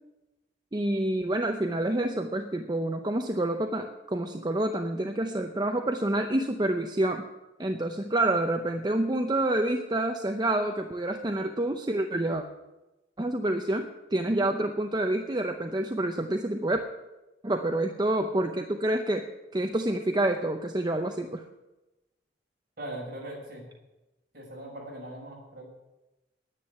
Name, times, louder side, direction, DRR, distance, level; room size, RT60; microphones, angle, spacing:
voice 1, 0.7-7.2 7.6-12.4 13.2-16.8 17.4-19.2 19.5-21.4, right 1 dB, 25° right, 4 dB, 0.7 m, -28 dB
voice 2, 22.8-23.6 24.3-25.7, right 1 dB, 50° right, -2 dB, 6.0 m, -40 dB
10.0 x 9.8 x 9.7 m, 1.0 s
head